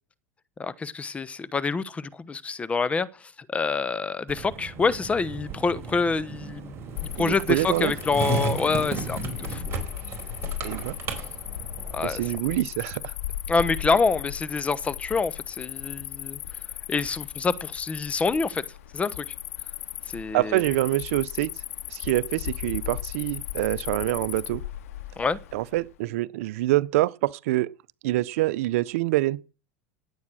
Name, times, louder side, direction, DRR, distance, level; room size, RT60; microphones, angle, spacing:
voice 1, 0.6-6.7 7.2-9.6 11.9-12.2 13.5-16.4 16.9-18.6 18.9-19.2 20.1-20.6 25.2-25.4, left 4 dB, 15° left, 1.0 m, -26 dB
Skateboard, 4.3-12.3, right 3 dB, 35° right, 4.5 m, -34 dB
Cricket, 7.0-25.9, left 13 dB, 85° left, 1.9 m, -36 dB
voice 2, 7.2-7.9 10.6-10.9 12.0-13.1 20.3-21.5 21.9-24.6 25.5-27.7 28.0-29.4, right 17 dB, 75° right, 0.7 m, -25 dB
18.5 x 8.5 x 6.3 m
supercardioid pair, 125°, 8 cm